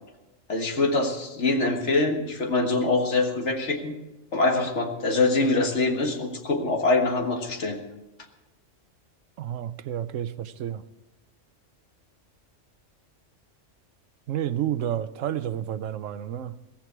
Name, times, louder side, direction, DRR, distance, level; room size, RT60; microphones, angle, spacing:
voice 1, 0.5-3.9 4.3-7.8, left 3 dB, 65° left, 4 dB, 1.9 m, -24 dB
voice 2, 9.4-10.8 14.3-16.6, right 10 dB, 85° right, 14 dB, 1.0 m, -30 dB
16.0 x 15.0 x 4.6 m, 1.1 s
omnidirectional pair, 1.3 m